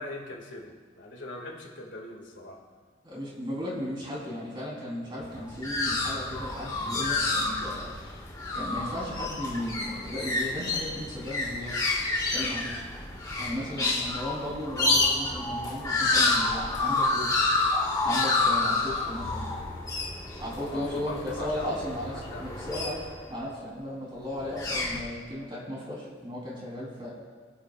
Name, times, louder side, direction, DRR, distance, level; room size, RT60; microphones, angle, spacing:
voice 1, 0.0-2.6 13.6-14.0 20.6-21.8 22.1-22.6, left 2 dB, 75° left, -1 dB, 2.3 m, -41 dB
voice 2, 3.0-7.9 8.5-11.8 12.3-12.8 13.4-17.4 18.0-19.5 20.4-22.1 22.4-23.0 23.3-27.1, left 1 dB, 25° right, -5 dB, 3.9 m, -35 dB
sound 1, 5.2-23.4 24.3-25.0, left 3 dB, 20° left, 1.7 m, -29 dB
23.0 x 9.8 x 2.5 m, 1.5 s
head